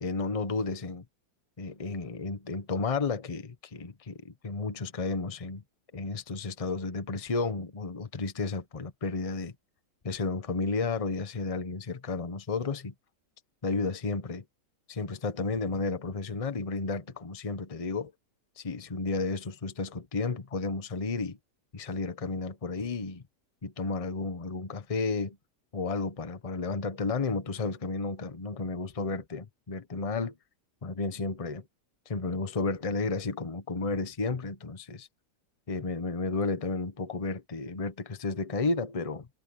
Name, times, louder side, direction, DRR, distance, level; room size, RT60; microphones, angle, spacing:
voice 1, 0.0-1.0 1.6-5.6 5.9-9.5 10.0-12.9 13.6-14.4 14.9-18.1 18.6-21.4 21.7-23.2 23.6-25.4 25.7-30.3 30.8-31.6 32.1-35.1 35.7-39.3, left 3 dB, 25° left, 1.0 m, -32 dB
omnidirectional pair, 1.8 m